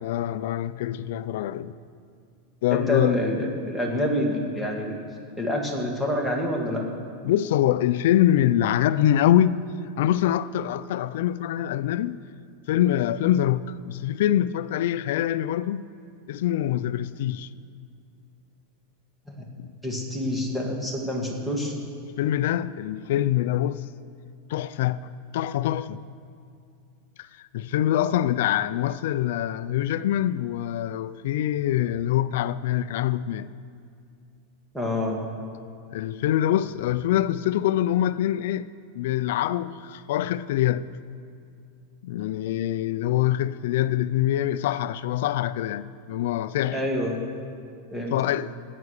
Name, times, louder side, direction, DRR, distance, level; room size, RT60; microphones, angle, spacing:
voice 1, 0.0-1.7 2.6-3.2 7.2-9.6 10.0-12.2 12.7-15.9 16.3-17.5 19.6-19.7 22.2-23.8 24.5-26.0 27.2-33.5 35.9-38.7 38.9-40.9 42.0-46.8 48.1-48.5, left 12 dB, 65° left, 0.5 m, -24 dB
voice 2, 2.7-4.9 5.4-6.8 19.3-19.4 19.8-21.7 34.7-35.2 46.7-47.2 47.9-48.1, left 1 dB, ahead, 2.0 m, -27 dB
17.0 x 9.8 x 6.6 m
supercardioid pair, 160°, 0 cm